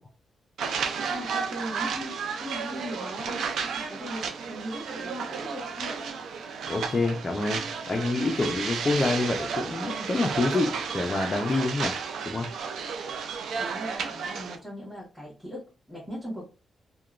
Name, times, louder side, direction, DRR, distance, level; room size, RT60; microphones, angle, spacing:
sound 1, 0.6-14.6, right 6 dB, 90° right, 0.4 m, -33 dB
voice 1, 1.1-6.0 13.6-16.4, equal, ahead, -9 dB, 1.3 m, -39 dB
voice 2, 6.6-12.0 12.3-12.5, left 2 dB, 25° left, 1 dB, 0.4 m, -27 dB
2.9 x 2.1 x 2.4 m, 0.31 s
wide cardioid pair, 175°, 0 cm